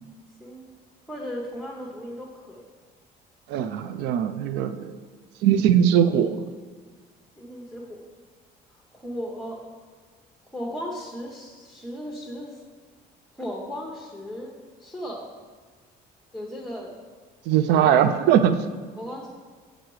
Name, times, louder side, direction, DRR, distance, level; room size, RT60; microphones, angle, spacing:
voice 1, 0.4-0.7 1.1-2.7 7.4-8.1 8.7-9.6 10.5-12.6 13.3-15.2 16.3-17.0 17.7-18.0 19.0-19.3, equal, ahead, -3 dB, 0.8 m, -36 dB
voice 2, 3.5-4.9 5.4-6.5 17.5-18.7, right 9 dB, 85° right, 11 dB, 0.4 m, -20 dB
6.5 x 3.9 x 4.7 m, 1.5 s
cardioid pair, 110°, 17 cm